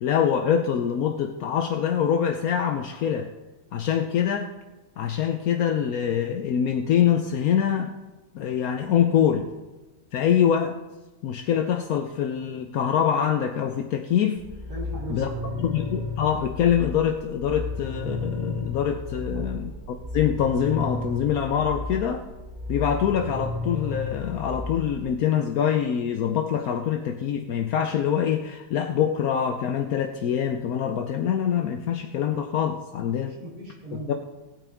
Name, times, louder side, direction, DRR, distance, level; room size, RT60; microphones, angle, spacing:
voice 1, 0.0-3.3 3.7-4.5 5.0-7.9 8.3-9.5 10.1-10.7 11.2-14.4 15.1-15.3 15.6-19.7 20.1-22.2 22.7-33.3 34.1-34.2, left 8 dB, 70° left, 5 dB, 0.8 m, -24 dB
sound 1, 14.4-25.0, left 3 dB, 35° right, 1.8 m, -33 dB
voice 2, 14.7-15.6 19.1-19.6 33.2-34.1, right 1 dB, 50° right, -4 dB, 3.7 m, -38 dB
18.0 x 9.0 x 3.5 m, 1.1 s
omnidirectional pair, 2.2 m